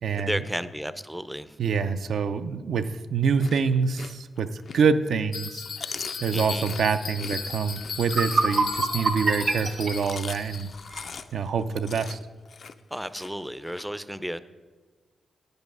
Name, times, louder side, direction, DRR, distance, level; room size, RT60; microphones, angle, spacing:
voice 1, 0.1-1.6 6.3-6.7 12.9-14.4, equal, 5° right, 13 dB, 0.4 m, -33 dB
voice 2, 1.6-5.6 6.2-10.7 11.3-12.2, right 5 dB, 75° right, 9 dB, 0.4 m, -26 dB
Chewing mastication, 3.2-5.1 5.5-9.0 9.7-13.8, left 5 dB, 60° left, 0.4 m, -42 dB
Bell, 5.3-10.9, left 6 dB, 75° left, 0.7 m, -36 dB
sound 1, 7.6-7.7 8.0-11.1, right 3 dB, 45° right, 0.7 m, -27 dB
8.3 x 5.3 x 6.0 m, 1.3 s
cardioid pair, 85°, 0 cm